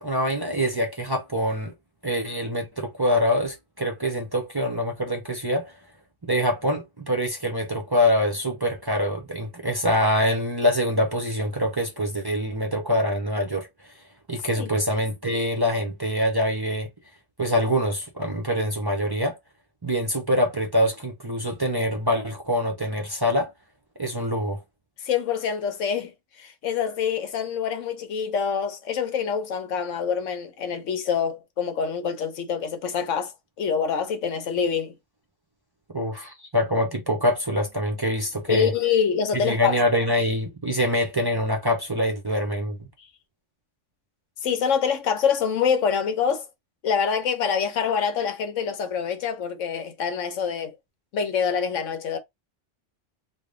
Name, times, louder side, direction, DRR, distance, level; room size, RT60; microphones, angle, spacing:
voice 1, 0.0-1.7 2.0-5.7 6.2-13.9 14.3-16.9 17.4-19.4 19.8-23.5 24.0-24.6 35.9-38.7 39.4-42.9, equal, 30° right, 0.4 m, -25 dB
voice 2, 25.0-26.1 26.4-33.3 33.6-34.9 38.5-39.8 44.4-46.5 46.8-50.8 51.1-52.2, left 7 dB, 80° left, 1.2 m, -25 dB
3.4 x 2.1 x 3.7 m
omnidirectional pair, 1.3 m